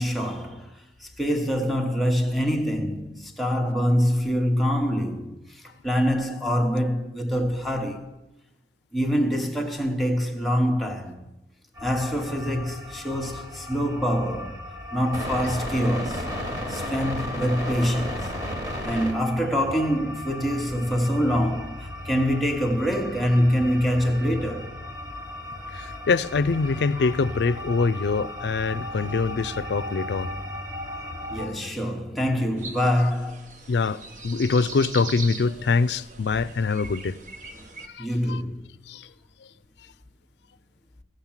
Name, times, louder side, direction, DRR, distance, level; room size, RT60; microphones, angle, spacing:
voice 1, 0.0-8.1 8.9-11.2 11.8-14.6 14.9-16.3 16.7-18.3 18.8-24.8 31.3-33.5 37.5-37.7 38.0-38.7, equal, ahead, 0.9 m, -25 dB
sound 1, 11.8-31.5, left 1 dB, 20° right, 1.8 m, -35 dB
voice 2, 25.7-30.4 31.4-31.5 33.7-37.2 37.9-38.4 38.9-39.1, left 4 dB, 75° left, 0.4 m, -24 dB
sound 2, 32.6-37.9, right 3 dB, 45° right, 0.9 m, -41 dB
15.5 x 6.4 x 7.3 m
head